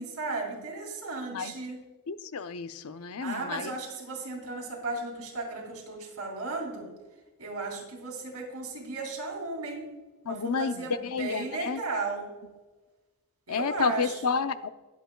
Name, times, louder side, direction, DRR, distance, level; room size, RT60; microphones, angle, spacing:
voice 1, 0.0-1.8 3.2-6.9 7.4-9.8 10.2-12.3 13.5-14.4, right 3 dB, 85° right, 0 dB, 3.0 m, -35 dB
voice 2, 2.1-3.7 10.3-11.8 13.5-14.7, left 5 dB, 70° left, 12 dB, 0.6 m, -30 dB
20.0 x 7.9 x 2.2 m, 1.2 s
head